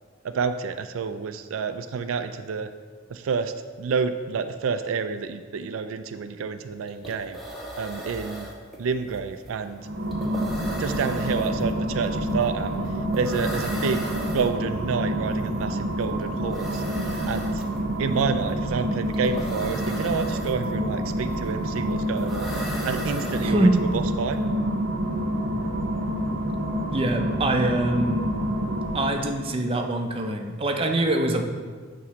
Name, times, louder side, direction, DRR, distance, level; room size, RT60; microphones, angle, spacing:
voice 1, 0.2-2.7 3.1-7.4 7.8-8.5 8.8-9.9 10.8-12.7 13.2-14.1 14.3-16.8 17.3-17.6 18.0-24.4, right 5 dB, 90° right, 9 dB, 0.4 m, -29 dB
sound 1, 6.6-6.7 6.9-24.0, equal, ahead, 1.1 m, -38 dB
sound 2, 9.8-29.5, equal, 65° right, 0.8 m, -28 dB
voice 2, 23.4-23.8 26.9-28.3 28.9-31.5, right 1 dB, 30° right, 3 dB, 0.6 m, -24 dB
8.5 x 3.1 x 6.1 m, 1.5 s
head